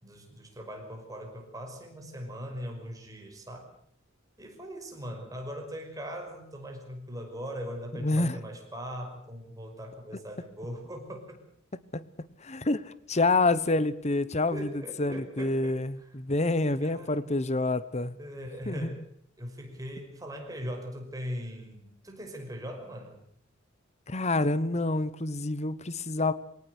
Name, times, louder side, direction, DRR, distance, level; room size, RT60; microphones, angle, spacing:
voice 1, 0.0-3.7 4.4-11.4 14.5-15.8 16.1-16.2 16.8-17.3 18.2-19.1 19.4-23.2, equal, 20° right, 5.7 m, -40 dB
voice 2, 8.0-8.4 11.9-12.0 12.4-14.7 15.0-18.2 18.7-18.9 24.1-26.3, left 2 dB, 35° left, 1.1 m, -27 dB
22.5 x 18.5 x 8.2 m
head